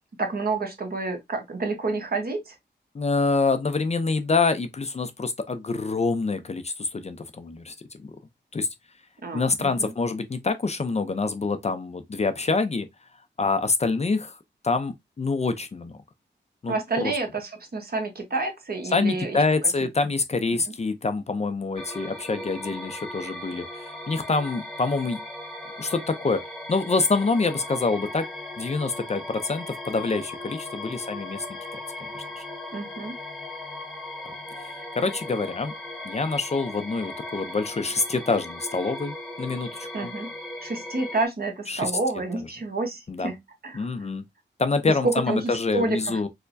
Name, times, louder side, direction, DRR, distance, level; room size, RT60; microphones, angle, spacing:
voice 1, 0.2-2.5 9.2-9.9 16.7-19.4 32.7-33.2 39.9-40.3 40.6-43.4 43.6-43.9 44.9-46.2, right 3 dB, 55° right, 1.1 m, -29 dB
voice 2, 2.9-7.7 8.0-8.1 8.5-8.7 9.3-12.9 13.4-14.4 14.6-16.0 16.6-17.1 18.9-25.2 25.8-26.4 26.7-28.3 28.6-31.4 31.7-31.8 32.1-32.4 35.0-35.7 36.0-40.1 41.7-41.9 43.1-43.3 43.7-44.2 44.6-46.3, left 3 dB, 35° left, 0.5 m, -26 dB
sound 1, 21.8-41.3, left 1 dB, ahead, 1.0 m, -38 dB
4.4 x 2.1 x 2.5 m
wide cardioid pair, 85°, 19 cm